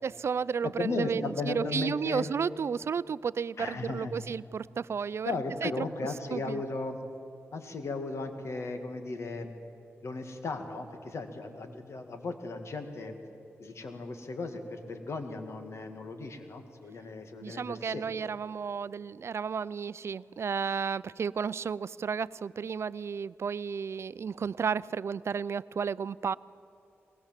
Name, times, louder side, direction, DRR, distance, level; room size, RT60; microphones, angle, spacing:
voice 1, 0.0-5.3 5.6-5.9 6.3-6.6 17.4-26.3, right 6 dB, 65° right, 19 dB, 0.4 m, -32 dB
voice 2, 0.6-2.3 3.6-4.1 5.2-7.0 7.5-9.5 10.0-13.2 13.6-18.0, left 3 dB, 70° left, 7 dB, 2.2 m, -36 dB
21.5 x 19.5 x 7.5 m, 2.8 s
cardioid pair, 55°, 5 cm